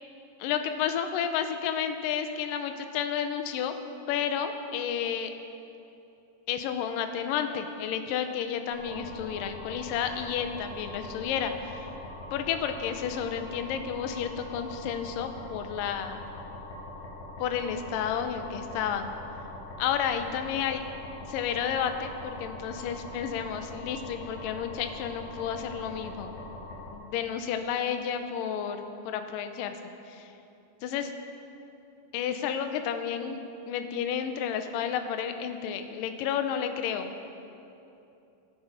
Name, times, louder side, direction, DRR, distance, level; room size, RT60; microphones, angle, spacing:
voice 1, 0.4-3.7 4.1-5.3 6.5-11.9 12.3-16.2 17.4-19.1 19.8-20.8 21.3-26.3 26.9-29.8 30.1-30.3 30.8-31.1 32.1-37.1, left 8 dB, 75° left, 7 dB, 2.2 m, -31 dB
sound 1, 8.7-26.9, left 2 dB, 45° left, 2.8 m, -43 dB
16.5 x 15.0 x 4.9 m, 2.8 s
omnidirectional pair, 4.5 m